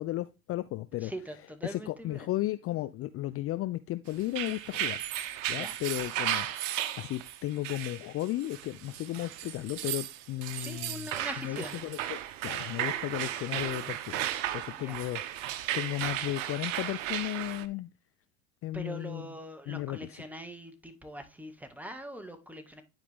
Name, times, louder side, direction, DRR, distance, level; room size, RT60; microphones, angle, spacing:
voice 1, 0.0-1.1 1.6-5.0 5.5-11.1 11.4-15.2 15.7-17.9 18.6-19.3 19.7-20.2, left 16 dB, 35° left, 0.4 m, -35 dB
voice 2, 1.0-2.3 5.5-5.8 10.6-11.8 14.7-15.1 18.7-22.8, right 1 dB, 5° right, 1.9 m, -43 dB
sound 1, 4.2-17.7, right 12 dB, 65° right, 0.9 m, -35 dB
10.5 x 4.9 x 3.5 m
hypercardioid pair, 75°, 40 cm